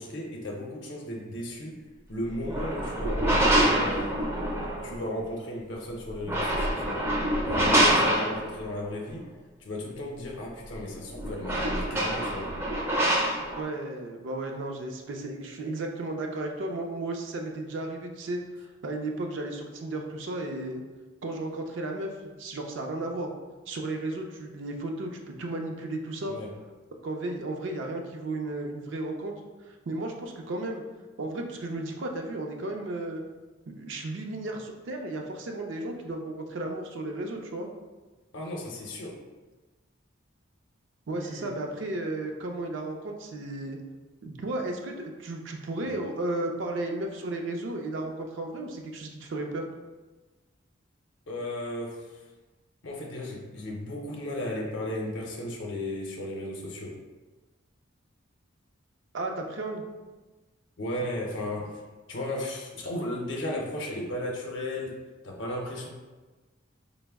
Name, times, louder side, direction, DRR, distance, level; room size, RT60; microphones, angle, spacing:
voice 1, 0.0-1.8 2.1-4.2 4.8-7.1 7.4-9.3 9.6-12.6 26.3-26.5 38.3-39.1 41.1-41.5 45.8-46.0 51.3-52.2 52.8-57.0 60.8-61.8 62.1-65.0 65.2-65.9, left 1 dB, 65° left, -1 dB, 0.6 m, -35 dB
sound 1, 2.3-5.0 6.1-8.8 10.7-10.8 11.1-13.6, right 1 dB, 15° right, 0.4 m, -26 dB
voice 2, 13.5-18.4 18.8-20.8 21.2-23.3 23.7-26.3 27.0-29.3 29.6-30.8 31.2-33.2 33.7-37.7 41.1-43.8 44.2-49.6 59.1-59.8, right 2 dB, 70° right, 2 dB, 0.5 m, -34 dB
4.1 x 2.0 x 3.4 m, 1.2 s
head